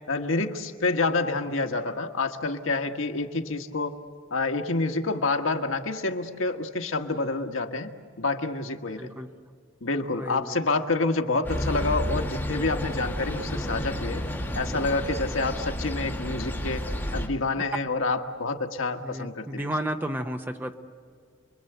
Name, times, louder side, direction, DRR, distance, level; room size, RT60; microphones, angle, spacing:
voice 1, 0.1-4.0 4.3-7.9 8.2-9.1 9.8-14.2 14.5-19.7, left 3 dB, 85° left, 5 dB, 1.5 m, -28 dB
voice 2, 9.0-9.3 10.1-10.6 19.0-20.7, right 1 dB, 10° right, 6 dB, 1.0 m, -32 dB
sound 1, 11.4-17.3, equal, 10° left, 2.2 m, -31 dB
29.0 x 22.5 x 8.0 m, 2.1 s
head